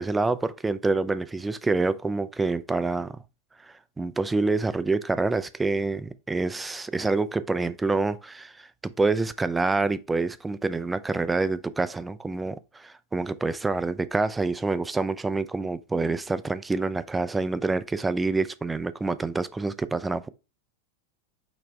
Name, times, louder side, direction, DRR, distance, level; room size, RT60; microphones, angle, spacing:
voice 1, 0.0-3.1 3.6-20.3, right 3 dB, 10° right, 0.3 m, -27 dB
4.9 x 3.3 x 3.2 m
figure-of-eight pair, 90°, 0 cm